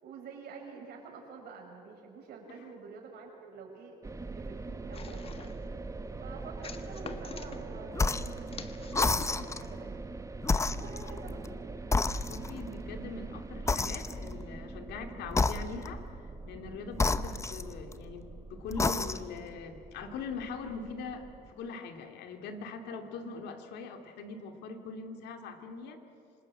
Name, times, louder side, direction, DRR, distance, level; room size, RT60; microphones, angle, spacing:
voice 1, 0.0-4.0 4.3-5.5 6.2-10.0 10.8-11.4 22.9-23.0, right 5 dB, 70° right, 1 dB, 6.2 m, -48 dB
sound 1, 4.0-21.5, right 3 dB, 20° right, 1.1 m, -43 dB
sound 2, 4.9-5.7 6.6-7.6 8.5-9.4, left 5 dB, 35° left, 1.5 m, -44 dB
sound 3, 7.9-8.4 8.9-9.7 10.4-11.5 11.9-12.7 13.7-14.4 15.3-16.0 16.9-18.1 18.7-19.4, left 3 dB, 15° left, 0.8 m, -30 dB
voice 2, 12.2-16.1 16.5-26.0, left 4 dB, 80° left, 6 dB, 2.5 m, -42 dB
27.0 x 20.0 x 8.7 m, 2.8 s
cardioid pair, 110°, 17 cm